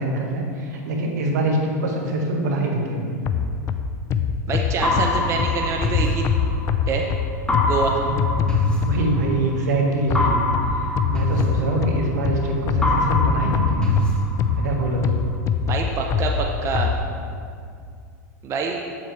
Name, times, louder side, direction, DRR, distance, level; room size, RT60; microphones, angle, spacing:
voice 1, 0.0-3.2 8.0-8.2 8.8-10.4 10.7-13.9 14.6-15.2, right 2 dB, 75° right, 1 dB, 1.4 m, -24 dB
sound 1, 3.2-9.3 10.1-17.0, left 6 dB, 35° left, 0.4 m, -24 dB
voice 2, 4.5-6.3 6.9-7.1 7.6-8.0 15.7-16.9 18.4-18.8, right 5 dB, 30° right, 1 dB, 0.7 m, -26 dB
sound 2, 4.8-6.9 7.5-9.6 10.1-12.4 12.8-14.9, left 2 dB, 10° left, 1.2 m, -24 dB
7.7 x 7.3 x 3.2 m, 2.3 s
hypercardioid pair, 115°, 9 cm